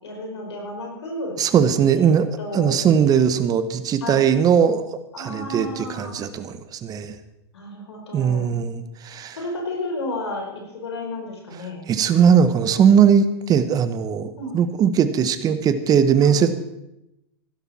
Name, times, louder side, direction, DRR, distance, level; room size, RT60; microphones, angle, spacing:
voice 1, 0.0-1.4 2.0-2.8 4.0-4.3 5.1-6.1 7.5-8.5 9.4-11.8 14.4-14.6 16.2-16.4, left 1 dB, 85° left, 0 dB, 4.8 m, -32 dB
voice 2, 1.4-2.3 2.5-7.2 8.1-9.4 11.9-16.5, right 7 dB, 30° right, 11 dB, 1.2 m, -19 dB
16.0 x 12.5 x 4.4 m, 0.88 s
hypercardioid pair, 115°, 14 cm